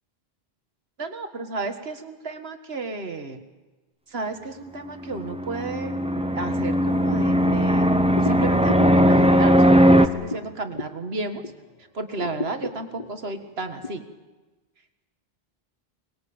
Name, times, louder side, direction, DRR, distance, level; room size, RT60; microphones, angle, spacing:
voice 1, 1.0-3.4 4.1-7.9 8.2-11.4 11.9-14.0, right 3 dB, 75° right, 7 dB, 2.0 m, -33 dB
Fixed-wing aircraft airplane, 5.2-10.1, equal, 5° right, 1.0 m, -18 dB
sound 1, 8.1-11.7 12.1-13.9, left 3 dB, 40° left, 1.6 m, -36 dB
24.5 x 20.5 x 8.7 m, 1.2 s
omnidirectional pair, 1.1 m